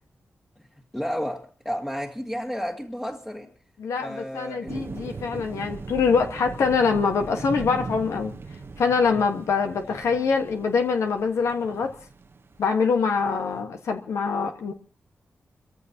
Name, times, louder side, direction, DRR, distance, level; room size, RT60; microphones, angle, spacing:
voice 1, 0.9-3.5 4.0-4.9, equal, 10° left, 1.8 m, -32 dB
voice 2, 3.8-8.3 8.8-11.9 12.6-14.7, left 5 dB, 85° left, 1.3 m, -24 dB
sound 1, 4.7-13.6, right 4 dB, 55° right, 1.0 m, -39 dB
30.0 x 14.5 x 2.8 m
cardioid pair, 50°, 5 cm